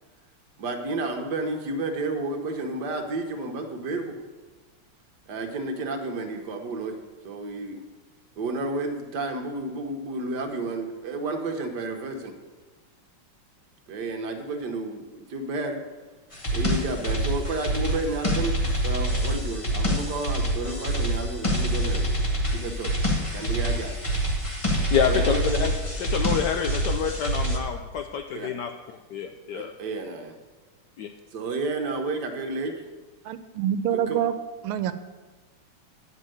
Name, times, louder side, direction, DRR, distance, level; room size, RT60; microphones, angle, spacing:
voice 1, 0.6-4.1 5.3-7.0 7.2-7.8 8.4-12.3 13.9-15.8 16.5-22.2 22.5-22.9 23.3-23.9 25.1-25.6 28.3-28.5 29.5-30.4 31.3-32.7 33.9-34.2, right 3 dB, 55° right, 4 dB, 1.4 m, -31 dB
sound 1, 16.3-27.6, equal, 20° left, 0.9 m, -26 dB
voice 2, 24.9-25.7 26.0-28.7 29.1-29.7 31.0-31.1, left 7 dB, 75° left, 5 dB, 1.0 m, -27 dB
voice 3, 33.2-34.3 34.6-34.9, right 10 dB, 85° right, 11 dB, 1.5 m, -26 dB
9.7 x 5.4 x 7.7 m, 1.3 s
omnidirectional pair, 2.4 m